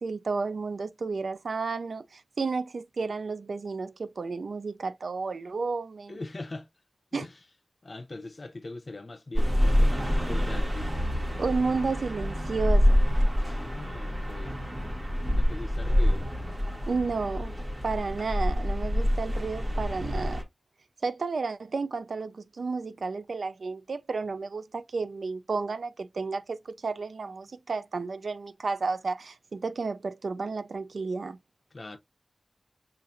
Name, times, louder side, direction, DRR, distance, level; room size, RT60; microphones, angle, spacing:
voice 1, 0.0-6.2 7.1-7.3 11.4-13.0 16.9-17.6 17.8-20.4 21.0-31.4, right 4 dB, 90° right, 0.4 m, -32 dB
voice 2, 6.1-6.7 7.1-7.4 7.8-10.9 13.4-14.6 15.3-16.2 31.7-32.0, left 2 dB, 55° left, 0.7 m, -41 dB
sound 1, 9.3-20.4, equal, 40° right, 1.3 m, -26 dB
5.7 x 2.6 x 2.6 m
wide cardioid pair, 60°, 0 cm